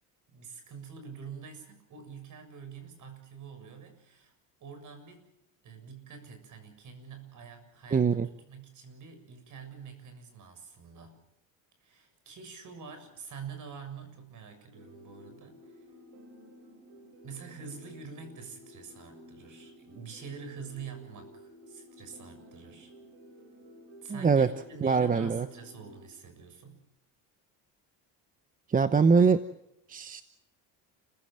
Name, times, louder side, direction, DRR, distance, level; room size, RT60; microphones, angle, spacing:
voice 1, 0.3-4.4 4.6-5.2 5.6-11.2 11.8-16.0 17.2-22.9 24.0-26.8, right 6 dB, 50° right, 8 dB, 7.3 m, -46 dB
voice 2, 7.9-8.3 24.1-24.5 24.8-25.5 28.7-29.4 29.9-30.2, right 5 dB, 20° right, 11 dB, 0.9 m, -23 dB
sound 1, 14.7-26.1, equal, 70° right, 6.2 m, -53 dB
30.0 x 16.0 x 7.7 m, 0.81 s
cardioid pair, 115°, 39 cm